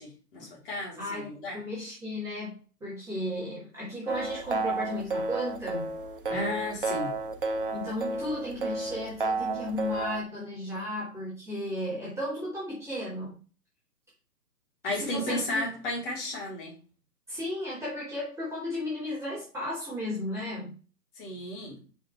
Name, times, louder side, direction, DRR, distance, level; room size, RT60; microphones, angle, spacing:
voice 1, 0.0-1.6 6.3-7.1 14.8-16.7 21.1-21.8, left 1 dB, 30° left, -3 dB, 3.3 m, -33 dB
voice 2, 1.0-5.9 7.7-13.4 14.8-15.6 17.3-20.8, left 1 dB, 5° right, -9 dB, 2.0 m, -34 dB
sound 1, 4.1-10.2, right 3 dB, 35° right, 0.5 m, -32 dB
5.2 x 5.1 x 4.6 m, 0.36 s
figure-of-eight pair, 135°, 49 cm